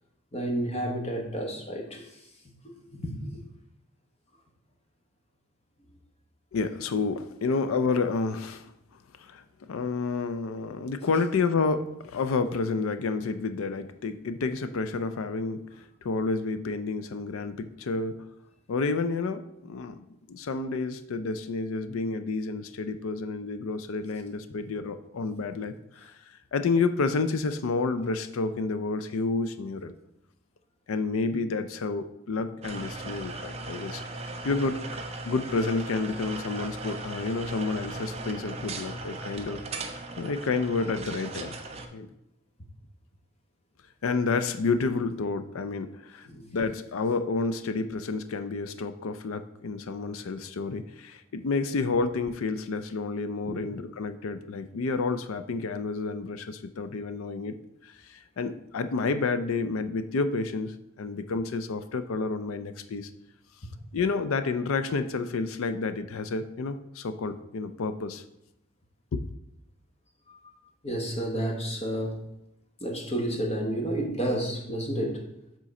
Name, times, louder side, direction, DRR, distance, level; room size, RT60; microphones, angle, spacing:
voice 1, 0.3-2.1 2.9-3.3 46.2-46.4 53.5-53.6 70.3-70.4 70.8-72.2 72.8-75.2, right 1 dB, 30° left, 1 dB, 1.1 m, -30 dB
voice 2, 6.5-8.7 9.2-9.4 9.7-18.3 18.7-20.0 20.3-26.1 26.5-29.9 30.9-34.0 34.4-39.6 40.2-41.5 41.9-42.1 44.0-46.3 46.5-57.6 57.8-63.1 63.9-68.2 69.1-69.2, left 4 dB, 85° left, 11 dB, 0.4 m, -30 dB
sound 1, 32.6-41.9, right 2 dB, 30° right, 0.5 m, -38 dB
7.4 x 3.8 x 4.2 m, 0.85 s
head